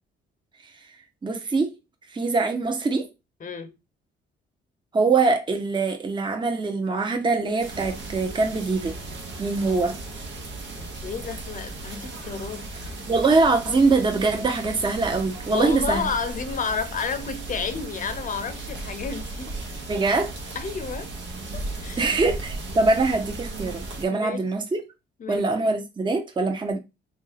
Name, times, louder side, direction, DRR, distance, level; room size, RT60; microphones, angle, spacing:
voice 1, 1.2-1.7 2.1-3.1 4.9-9.0 9.4-10.0 13.1-16.1 19.9-20.3 22.0-24.9 25.3-26.8, right 3 dB, 25° right, 0.7 m, -23 dB
voice 2, 3.4-3.7 10.7-13.0 15.5-19.7 20.5-21.1 21.5-22.1 24.1-24.4 25.2-25.7, left 5 dB, 40° left, 0.7 m, -31 dB
sound 1, 7.6-24.0, right 2 dB, 70° right, 1.1 m, -36 dB
3.1 x 2.6 x 4.0 m
cardioid pair, 90°, 20 cm